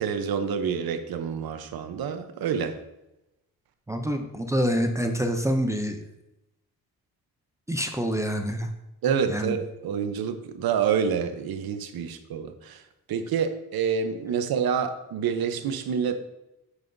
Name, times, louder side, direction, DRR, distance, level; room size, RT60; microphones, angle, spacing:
voice 1, 0.0-2.8 9.0-12.8 13.1-16.2, right 7 dB, 70° right, 8 dB, 0.8 m, -27 dB
voice 2, 3.9-6.0 7.7-8.7 9.3-9.6, equal, 10° right, 4 dB, 0.4 m, -26 dB
9.1 x 5.6 x 2.6 m, 0.91 s
wide cardioid pair, 165°, 37 cm